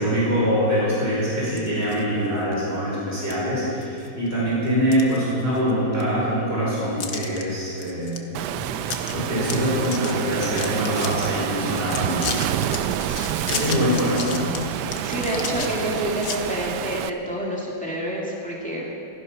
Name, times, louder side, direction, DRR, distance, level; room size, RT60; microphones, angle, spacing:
voice 1, 0.0-8.2 9.1-12.3 13.5-14.5 15.3-15.5, equal, 35° right, -7 dB, 5.2 m, -24 dB
sound 1, 1.4-2.0 2.5-2.6 3.3-3.4 3.8-4.3 4.7-5.7 6.0-6.1 7.0-7.4 7.8-8.2 8.5-8.6 8.8-9.1 9.4-11.3 11.7-16.4, left 6 dB, 65° left, 1.5 m, -33 dB
Waves surf, 8.3-17.1, right 11 dB, 80° right, 1.2 m, -28 dB
voice 2, 13.2-13.9 14.8-18.9, equal, 5° left, -4 dB, 2.5 m, -29 dB
16.0 x 14.0 x 5.9 m, 2.7 s
omnidirectional pair, 1.8 m